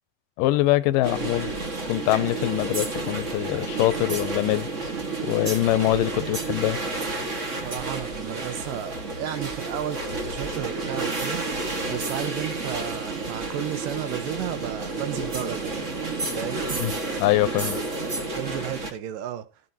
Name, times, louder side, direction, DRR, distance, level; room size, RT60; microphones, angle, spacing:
voice 1, 0.4-1.5 1.9-4.7 5.2-6.8 16.8-16.9 17.2-17.8, left 16 dB, 80° left, 2.4 m, -23 dB
sound 1, 1.0-18.9, right 3 dB, 35° right, 1.3 m, -31 dB
voice 2, 7.6-10.0 10.2-11.4 11.9-15.9 16.4-16.9 18.3-19.5, right 11 dB, 80° right, 2.8 m, -33 dB
14.5 x 9.7 x 2.9 m
omnidirectional pair, 3.8 m